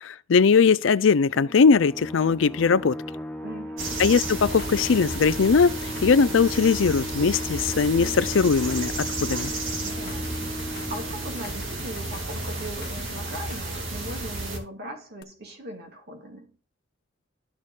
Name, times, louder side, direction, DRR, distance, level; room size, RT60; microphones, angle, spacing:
voice 1, 0.0-3.0 4.0-8.9 9.2-9.5, left 5 dB, 80° left, 0.5 m, -20 dB
sound 1, 1.4-12.6, equal, 5° left, 0.8 m, -37 dB
voice 2, 3.4-4.0 9.8-16.6, right 1 dB, 55° right, 2.5 m, -39 dB
sound 2, 3.8-14.6, right 2 dB, 85° right, 2.8 m, -32 dB
sound 3, 4.2-13.8 15.2-15.3, left 4 dB, 60° left, 1.0 m, -45 dB
13.0 x 6.5 x 2.5 m
head